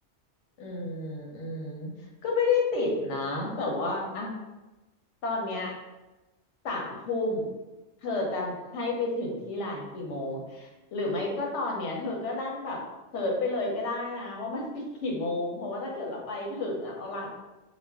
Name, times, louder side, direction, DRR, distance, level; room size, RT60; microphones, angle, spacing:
voice 1, 0.6-1.9 2.2-4.3 5.2-5.7 6.6-7.5 8.0-12.8 13.1-17.3, left 3 dB, 85° left, 0 dB, 1.0 m, -31 dB
2.4 x 2.1 x 3.4 m, 1.1 s
omnidirectional pair, 1.2 m